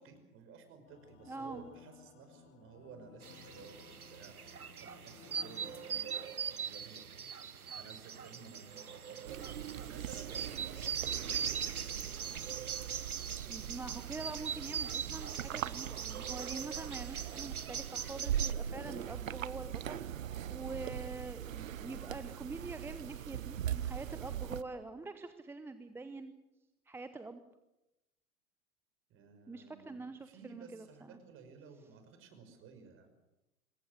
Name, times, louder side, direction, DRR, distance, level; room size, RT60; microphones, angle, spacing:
voice 1, 0.0-3.8 4.1-7.2 7.7-9.4 9.8-12.3 29.1-33.1, right 6 dB, 30° right, 8 dB, 5.8 m, -55 dB
sound 1, 0.9-6.2, left 7 dB, 25° left, 2.6 m, -57 dB
voice 2, 1.3-1.7 13.5-26.3 26.9-27.4 29.5-31.2, right 3 dB, 5° right, 10 dB, 0.8 m, -45 dB
sound 2, 3.2-18.5, right 7 dB, 80° right, 1.3 m, -41 dB
sound 3, 9.3-24.6, right 10 dB, 65° right, 1.0 m, -41 dB
27.0 x 22.0 x 6.7 m, 0.95 s
figure-of-eight pair, 105°, 44 cm